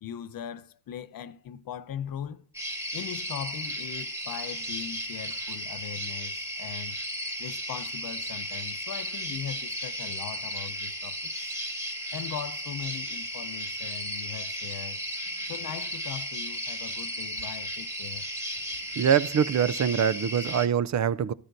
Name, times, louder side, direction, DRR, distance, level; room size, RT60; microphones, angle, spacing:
voice 1, 0.0-2.5 2.9-7.0 7.4-11.5 12.1-15.0 15.5-18.3, left 9 dB, 70° left, 0.7 m, -40 dB
sound 1, 2.5-20.7, equal, 10° right, 1.7 m, -35 dB
voice 2, 19.0-21.3, right 8 dB, 50° right, 0.5 m, -24 dB
14.0 x 11.5 x 2.6 m
cardioid pair, 90°, 35 cm